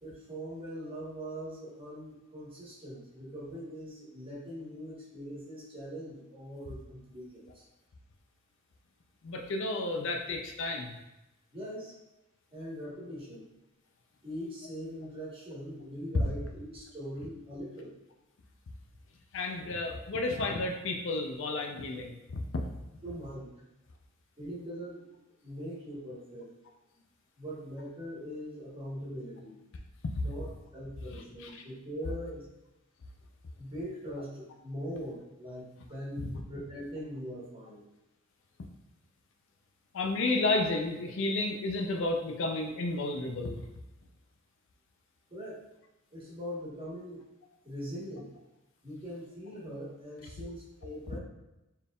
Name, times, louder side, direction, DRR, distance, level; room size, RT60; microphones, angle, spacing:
voice 1, 0.0-7.6 11.5-11.9 12.5-13.4 14.2-17.9 23.0-23.5 24.4-26.5 27.4-29.6 30.2-30.5 30.7-32.4 33.6-37.8 45.3-45.6 46.1-47.2 47.6-48.3 48.8-51.2, equal, 25° right, -7 dB, 1.2 m, -41 dB
voice 2, 9.2-11.0 19.3-22.2 22.5-22.6 30.2-30.3 31.1-31.6 36.2-36.3 39.9-43.6, left 2 dB, 60° left, 3 dB, 0.4 m, -32 dB
4.4 x 3.5 x 2.3 m, 0.94 s
head